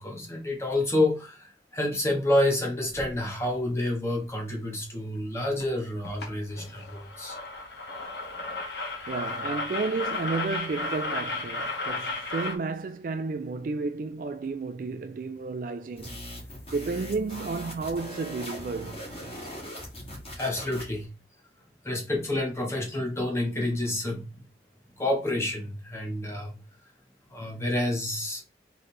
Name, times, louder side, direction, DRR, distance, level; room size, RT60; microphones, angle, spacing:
voice 1, 0.0-7.4 20.0-21.1 21.8-24.4 25.0-26.6 27.3-28.4, left 1 dB, 15° left, 1.3 m, -29 dB
sound 1, 3.0-3.2 5.6-5.7 6.0-6.3 6.6-12.5, left 2 dB, 75° left, 1.1 m, -34 dB
voice 2, 9.1-16.2 16.7-19.0, right 4 dB, 50° right, 0.3 m, -32 dB
sound 2, 16.0-21.0, equal, 30° left, 2.1 m, -40 dB
3.8 x 3.2 x 4.3 m
head